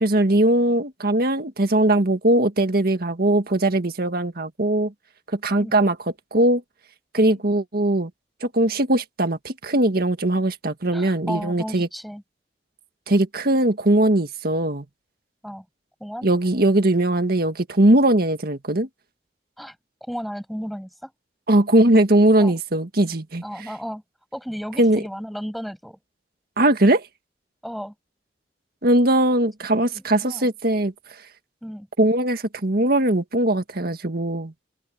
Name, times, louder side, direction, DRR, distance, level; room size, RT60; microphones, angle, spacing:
voice 1, 0.0-4.9 5.3-6.0 6.3-6.6 7.1-8.1 8.4-11.9 13.1-14.9 16.2-18.9 21.5-23.4 24.8-25.0 26.6-27.1 28.8-30.9 32.0-34.5, right 1 dB, 60° right, 1.9 m, -20 dB
voice 2, 10.9-12.2 15.4-15.6 16.0-16.3 19.6-19.7 20.1-21.1 22.4-22.5 23.4-24.0 24.3-26.0 27.6-27.9 29.9-30.5 31.6-31.9, equal, ahead, 7.6 m, -34 dB
open air
head